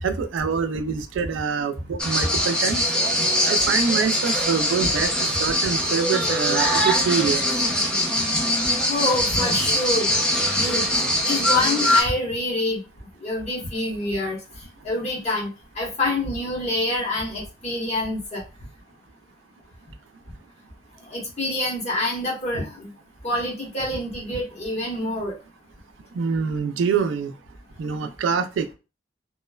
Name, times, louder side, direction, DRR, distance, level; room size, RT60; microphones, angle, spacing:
voice 1, 0.0-2.8 3.4-7.4 26.1-27.3 27.8-28.7, right 6 dB, 90° right, 9 dB, 0.3 m, -25 dB
sound 1, 2.0-12.0, equal, 5° left, 0.5 m, -22 dB
voice 2, 8.9-10.1 10.5-10.8 11.2-12.8 13.2-14.4 14.8-15.5 15.8-18.4 21.1-22.9 23.2-25.3, left 2 dB, 35° left, -2 dB, 1.0 m, -26 dB
2.9 x 2.0 x 2.2 m, 0.30 s
head